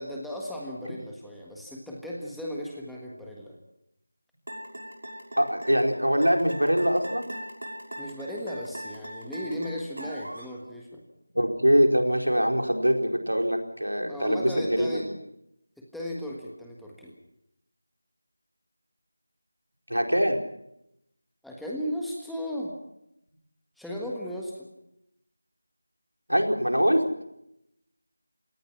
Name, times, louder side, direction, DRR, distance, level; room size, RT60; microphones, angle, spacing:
voice 1, 0.0-3.6 7.9-11.0 14.1-15.1 15.8-17.1 21.4-22.7 23.8-24.7, equal, ahead, -3 dB, 1.6 m, -36 dB
sound 1, 4.5-10.5, equal, 60° right, 6.3 m, -39 dB
voice 2, 5.4-7.3 11.3-15.1 19.9-20.4 26.3-27.0, equal, 85° right, 3 dB, 4.3 m, -23 dB
27.0 x 18.5 x 5.9 m, 0.80 s
figure-of-eight pair, 165°, 0 cm